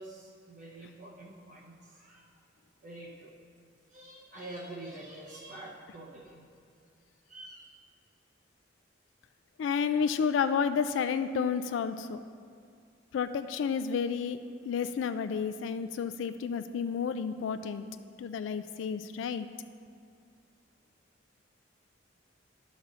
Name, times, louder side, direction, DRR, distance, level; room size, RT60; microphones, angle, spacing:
voice 1, 0.0-2.3 2.8-3.3 3.9-6.4 7.3-7.7, right 2 dB, 45° right, -2 dB, 0.7 m, -46 dB
voice 2, 9.6-12.2 13.1-14.4 14.6-17.9 18.2-19.5, left 6 dB, 80° left, 10 dB, 0.3 m, -31 dB
11.0 x 4.1 x 6.1 m, 2.2 s
head